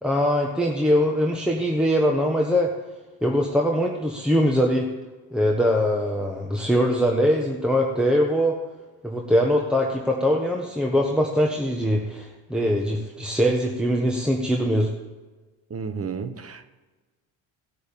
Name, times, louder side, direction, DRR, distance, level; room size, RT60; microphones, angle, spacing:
voice 1, 0.0-2.7 3.2-4.9 5.3-8.6 9.0-14.9, equal, ahead, 0 dB, 1.4 m, -22 dB
voice 2, 15.7-16.6, right 5 dB, 35° right, 10 dB, 1.2 m, -32 dB
16.5 x 6.1 x 7.3 m, 1.3 s
supercardioid pair, 70°, 43 cm